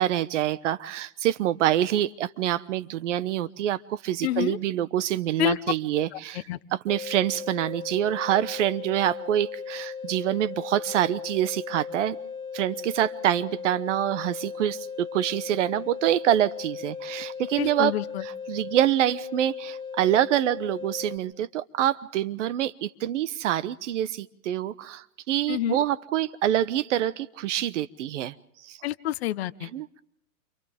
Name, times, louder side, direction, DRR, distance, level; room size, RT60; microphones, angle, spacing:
voice 1, 0.0-6.4 6.7-12.2 12.5-17.9 18.2-28.3 28.6-28.8 29.7-30.0, right 12 dB, 50° right, 16 dB, 1.0 m, -26 dB
voice 2, 4.2-4.6 5.4-5.6 6.1-6.2 6.5-6.6 17.6-18.2 25.5-25.8 28.8-29.7, left 15 dB, 40° left, 15 dB, 0.8 m, -28 dB
sound 1, 6.9-21.2, left 6 dB, 10° left, 4.1 m, -37 dB
29.0 x 27.5 x 3.6 m, 0.75 s
hypercardioid pair, 150°, 49 cm